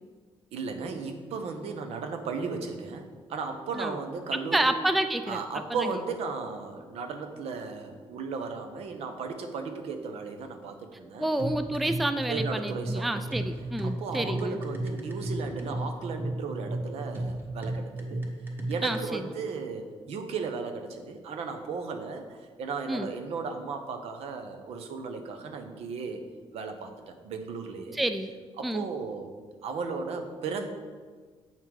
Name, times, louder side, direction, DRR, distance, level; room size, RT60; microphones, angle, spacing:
voice 1, 0.5-4.7 5.3-11.3 12.3-13.4 13.8-18.2 18.7-26.2 26.5-28.0 28.6-29.3 29.6-30.7, right 4 dB, 75° right, 6 dB, 0.9 m, -35 dB
voice 2, 4.5-5.4 5.8-5.9 11.2-14.6 18.8-19.2 22.9-23.1 27.9-28.3 28.6-28.9, right 1 dB, ahead, 9 dB, 0.3 m, -29 dB
sound 1, 11.4-19.0, right 1 dB, 20° right, 1.3 m, -33 dB
7.4 x 5.6 x 4.7 m, 1.5 s
cardioid pair, 130°, 10 cm